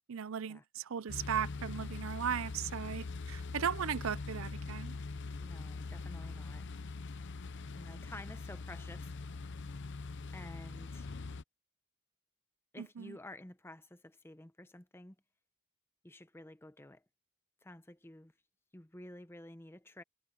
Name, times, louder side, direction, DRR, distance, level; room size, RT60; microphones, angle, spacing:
voice 1, 0.1-5.0 12.8-13.2, right 8 dB, 60° right, 0.5 m, -37 dB
sound 1, 1.1-11.4, left 3 dB, 55° left, 0.7 m, -42 dB
voice 2, 5.4-6.7 7.7-9.4 10.3-11.1 12.7-15.2 16.0-17.0 17.6-18.3 18.7-20.0, left 1 dB, 10° left, 0.7 m, -51 dB
head